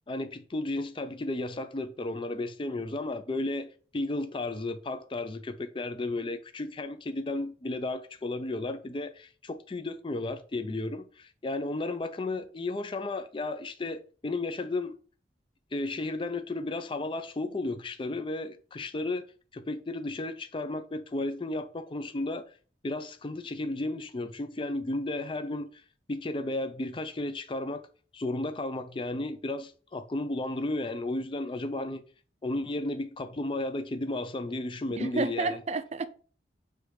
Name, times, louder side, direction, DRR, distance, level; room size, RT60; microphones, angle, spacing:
voice 1, 0.1-15.0 15.7-19.2 19.5-22.5 22.8-25.8 26.1-27.9 28.1-32.0 32.4-35.6, left 2 dB, 30° left, 0.4 m, -33 dB
voice 2, 35.0-36.1, right 3 dB, 35° right, 0.5 m, -30 dB
6.4 x 3.2 x 4.8 m
head